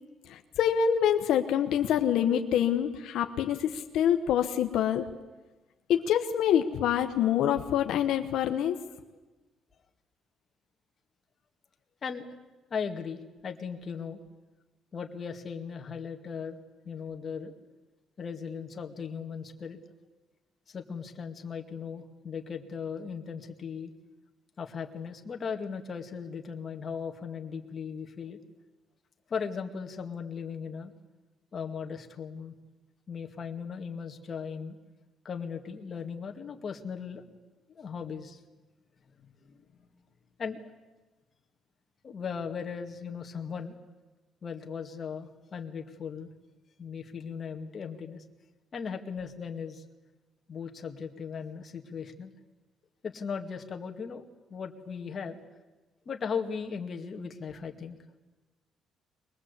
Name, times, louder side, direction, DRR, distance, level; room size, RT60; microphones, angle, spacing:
voice 1, 0.3-5.1 5.9-8.8, left 9 dB, 75° left, 6 dB, 1.2 m, -26 dB
voice 2, 12.7-14.2 14.9-16.6 16.9-17.5 18.2-19.8 20.7-23.9 24.6-28.4 29.3-30.9 31.5-32.5 33.1-34.8 35.2-37.2 37.7-38.4 39.2-39.6 40.4-40.6 42.0-43.7 44.4-46.3 46.8-48.2 48.7-49.8 50.5-52.3 53.0-54.2 54.5-55.4 56.1-58.0, left 6 dB, 35° left, 3 dB, 2.1 m, -37 dB
23.0 x 21.0 x 8.2 m, 1.2 s
cardioid pair, 130°, 0 cm